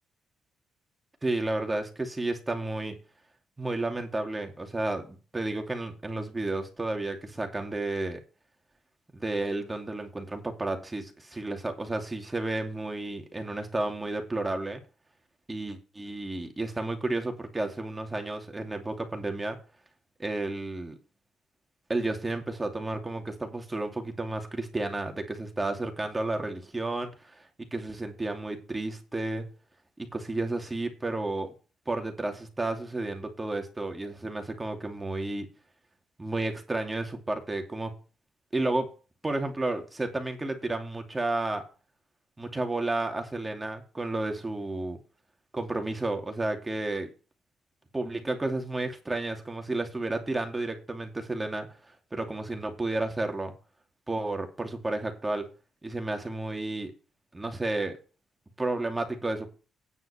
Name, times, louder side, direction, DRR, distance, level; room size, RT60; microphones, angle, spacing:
voice 1, 1.2-3.0 3.6-8.2 9.1-14.8 15.5-19.6 20.2-21.0 21.9-27.4 27.7-29.4 30.0-31.5 31.9-35.5 36.2-37.9 38.5-38.9 39.2-41.6 42.4-45.0 45.5-47.1 47.9-51.7 52.1-53.5 54.1-55.5 55.8-56.9 57.3-58.0 58.6-59.5, right 2 dB, 15° right, 2.7 m, -32 dB
9.6 x 5.9 x 7.0 m
cardioid pair, 90°, 0 cm